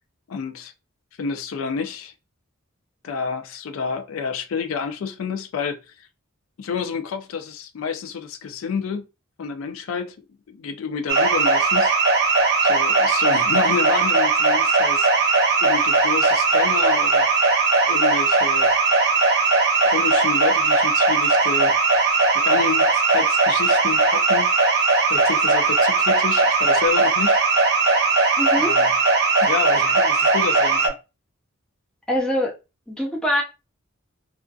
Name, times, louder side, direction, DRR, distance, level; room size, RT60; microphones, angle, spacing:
voice 1, 0.3-0.7 1.2-2.1 3.0-6.1 6.6-9.1 9.4-10.2 10.5-12.0 12.6-17.3 17.9-18.7 19.8-21.8 22.3-27.4 28.6-28.9 29.4-30.9, left 6 dB, 75° left, 0.4 m, -29 dB
sound 1, 11.1-30.9, right 3 dB, 55° right, 0.6 m, -18 dB
voice 2, 28.4-28.8 32.1-32.5 32.9-33.4, equal, 5° left, 0.6 m, -23 dB
2.5 x 2.4 x 2.3 m
head